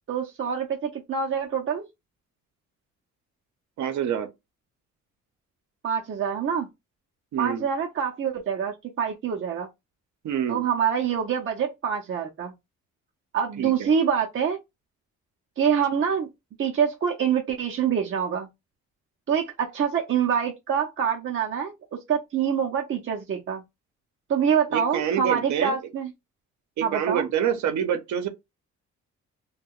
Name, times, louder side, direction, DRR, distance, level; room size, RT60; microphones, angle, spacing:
voice 1, 0.1-1.9 5.8-6.7 7.4-9.7 10.5-12.5 13.3-14.6 15.6-16.3 16.6-18.5 19.3-23.6 24.3-26.1 26.8-27.3, right 7 dB, 45° right, 0.6 m, -25 dB
voice 2, 3.8-4.3 7.3-7.7 10.2-10.6 13.6-13.9 24.7-25.7 26.8-28.3, right 9 dB, 70° right, 0.8 m, -27 dB
2.3 x 2.2 x 3.6 m
cardioid pair, 90°, 30 cm